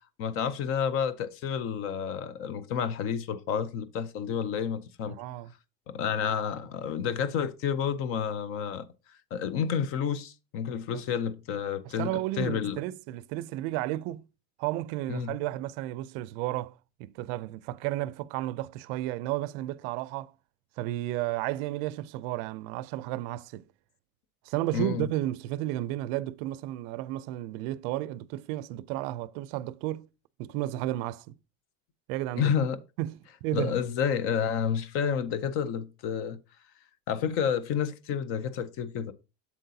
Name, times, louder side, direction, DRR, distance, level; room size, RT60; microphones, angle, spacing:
voice 1, 0.2-5.2 5.9-8.9 9.3-12.1 12.4-12.8 15.1-15.4 24.7-25.1 32.4-32.8 33.5-36.4 37.1-39.1, left 7 dB, 40° left, 0.5 m, -30 dB
voice 2, 5.1-5.5 10.9-11.0 12.0-14.2 14.6-20.3 20.8-23.7 24.5-30.1 30.4-31.4 32.1-32.5 33.0-33.8, right 15 dB, 60° right, 0.5 m, -33 dB
7.7 x 7.4 x 2.7 m
cardioid pair, 175°, 33 cm